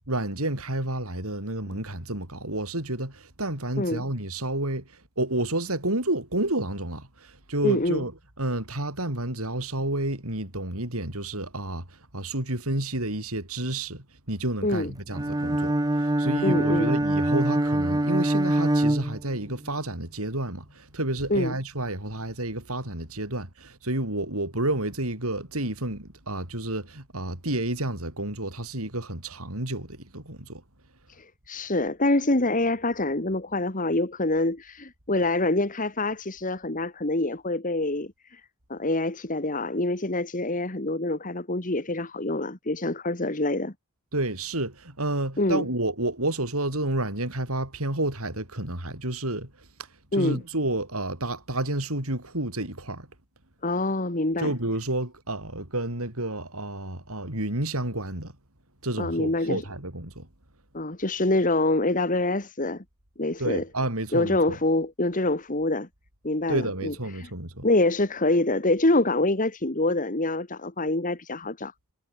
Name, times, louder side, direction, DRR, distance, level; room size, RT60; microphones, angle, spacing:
voice 1, 0.1-8.1 8.4-30.6 44.1-49.5 50.1-53.1 54.4-58.3 58.8-60.3 63.4-64.6 66.5-67.7, right 1 dB, 75° right, 6.6 m, -30 dB
voice 2, 7.6-8.0 14.6-14.9 16.4-16.9 21.3-21.6 31.1-38.4 38.7-43.7 45.4-45.7 50.1-50.4 53.6-54.5 59.0-59.6 60.7-62.8 63.2-63.6 64.1-65.9 66.2-67.3 67.6-71.7, left 2 dB, 35° left, 2.0 m, -25 dB
Bowed string instrument, 15.1-19.7, right 1 dB, 15° right, 0.9 m, -24 dB
head